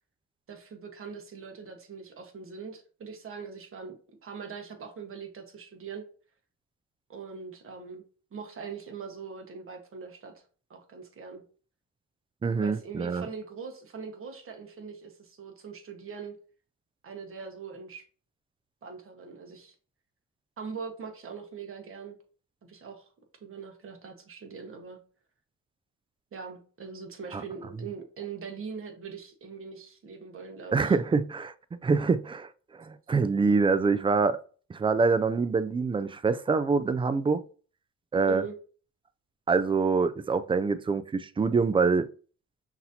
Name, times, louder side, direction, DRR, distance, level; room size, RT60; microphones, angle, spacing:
voice 1, 0.5-4.0 4.2-6.0 7.1-8.0 8.3-10.4 10.7-11.4 12.6-16.4 17.0-18.0 18.8-19.7 20.6-22.2 22.6-23.1 23.4-25.0 26.3-30.9 38.3-38.6, right 5 dB, 45° right, 1.2 m, -42 dB
voice 2, 12.4-13.3 27.3-27.4 30.7-31.5 31.8-34.4 34.7-37.4 38.1-38.4 39.5-42.1, right 4 dB, 20° right, 0.3 m, -25 dB
5.8 x 2.8 x 2.7 m
cardioid pair, 90°, 30 cm